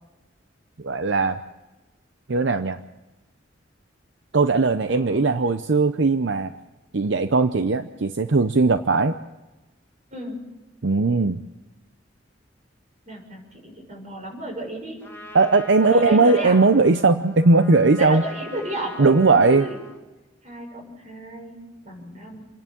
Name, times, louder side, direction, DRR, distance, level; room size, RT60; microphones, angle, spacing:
voice 1, 0.8-1.4 2.3-2.8 4.3-6.5 6.9-9.1 10.8-11.4 15.3-18.2 19.0-19.7, right 3 dB, 70° right, 10 dB, 0.7 m, -18 dB
voice 2, 4.8-5.3 10.1-10.4 13.1-15.0 15.8-16.5 18.0-19.8 20.4-21.6 21.8-22.5, right 2 dB, 40° right, 1 dB, 6.7 m, -33 dB
Trumpet, 15.0-20.0, left 2 dB, 10° left, 1.9 m, -42 dB
28.5 x 11.0 x 8.5 m, 1.1 s
head